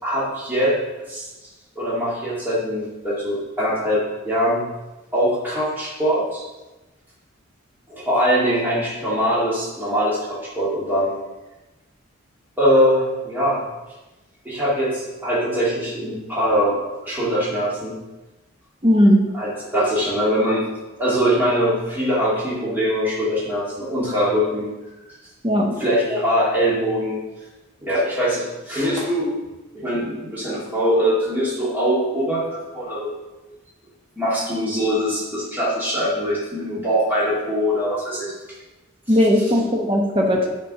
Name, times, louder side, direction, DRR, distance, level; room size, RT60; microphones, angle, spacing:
voice 1, 0.0-0.7 1.1-1.2 1.8-4.6 5.1-6.4 7.9-11.1 12.6-13.6 14.5-18.0 19.3-20.7 21.0-24.7 25.8-27.2 27.8-29.3 29.7-33.1 34.2-38.3, equal, 10° right, -8 dB, 1.9 m, -22 dB
voice 2, 18.8-19.2 25.4-25.7 39.1-40.5, equal, 25° right, 0 dB, 0.9 m, -17 dB
7.0 x 4.5 x 5.5 m, 1.1 s
head